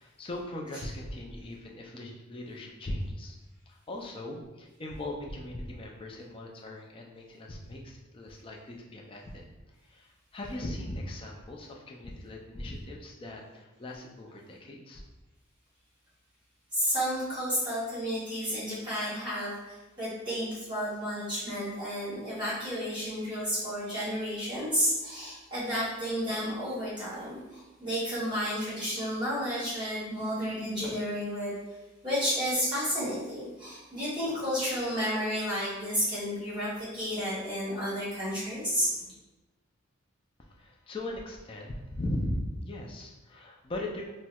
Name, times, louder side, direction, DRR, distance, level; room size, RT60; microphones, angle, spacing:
voice 1, 0.0-3.4 3.7-9.5 9.8-15.0 40.4-44.1, left 1 dB, 25° left, 0 dB, 0.3 m, -39 dB
voice 2, 16.7-31.5 32.0-38.9, equal, 20° right, -10 dB, 1.0 m, -31 dB
4.2 x 2.1 x 2.2 m, 1.1 s
head